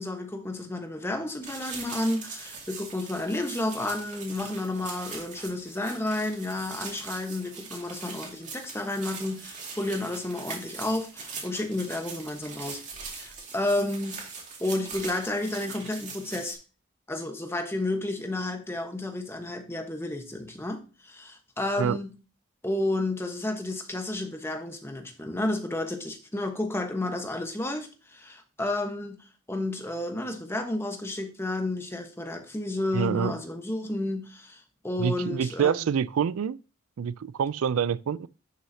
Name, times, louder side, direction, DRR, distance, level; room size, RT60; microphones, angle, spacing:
voice 1, 0.0-14.2 14.6-16.6 17.1-22.1 22.6-29.2 29.5-35.9, left 2 dB, 10° left, 1.1 m, -31 dB
sound 1, 1.4-16.5, right 4 dB, 35° right, 2.2 m, -41 dB
voice 2, 32.9-33.3 35.0-36.6 37.0-38.3, right 7 dB, 85° right, 0.4 m, -26 dB
11.0 x 6.4 x 2.8 m
head